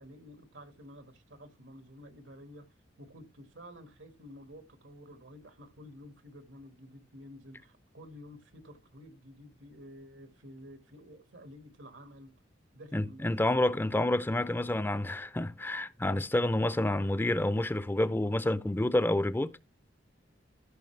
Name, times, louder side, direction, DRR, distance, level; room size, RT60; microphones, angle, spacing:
voice 1, 0.0-2.7 3.0-12.3 12.7-13.3, equal, 85° right, 1.7 m, -51 dB
voice 2, 12.9-19.5, left 1 dB, 10° left, 0.4 m, -29 dB
15.0 x 5.6 x 3.2 m
head